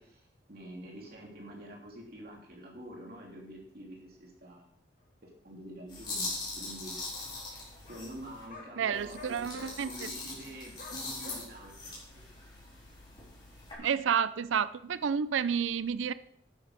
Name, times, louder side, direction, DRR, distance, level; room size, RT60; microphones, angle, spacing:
voice 1, 0.0-4.7 5.2-7.0 7.9-12.3, right 1 dB, 50° right, -2 dB, 3.0 m, -47 dB
sound 1, 5.0-5.1 6.0-6.1 6.3-6.4 6.7-6.8 7.8-8.1 8.5-8.7 9.1-9.7 10.8-11.4, left 2 dB, 45° left, 2.5 m, -48 dB
sound 2, 5.9-8.5 8.9-13.7, left 3 dB, 25° left, 4.1 m, -41 dB
voice 2, 8.8-10.1 13.8-16.1, right 7 dB, 90° right, 16 dB, 0.4 m, -30 dB
11.0 x 8.8 x 5.1 m, 0.71 s
head